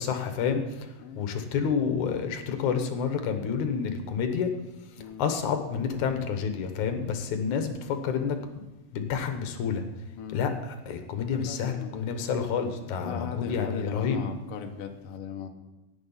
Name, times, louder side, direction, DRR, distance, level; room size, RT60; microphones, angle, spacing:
voice 1, 0.0-4.5 4.9-8.4 8.9-9.8 10.3-14.2, left 6 dB, 65° left, 6 dB, 2.2 m, -29 dB
voice 2, 11.2-12.2 13.0-15.5, left 6 dB, 85° left, 4 dB, 1.2 m, -38 dB
17.5 x 7.0 x 5.5 m, 1.1 s
omnidirectional pair, 4.3 m